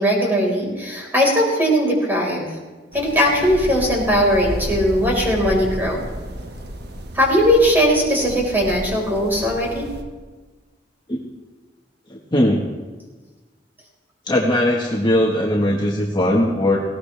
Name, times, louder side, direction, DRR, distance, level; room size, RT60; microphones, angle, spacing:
voice 1, 0.0-2.5 2.9-6.1 7.1-9.9, equal, 10° right, -2 dB, 5.1 m, -19 dB
sound 1, 2.9-10.0, equal, 65° right, 1.5 m, -32 dB
voice 2, 12.1-12.6 14.3-16.8, left 1 dB, 25° left, -3 dB, 1.7 m, -19 dB
19.5 x 17.5 x 3.5 m, 1.3 s
head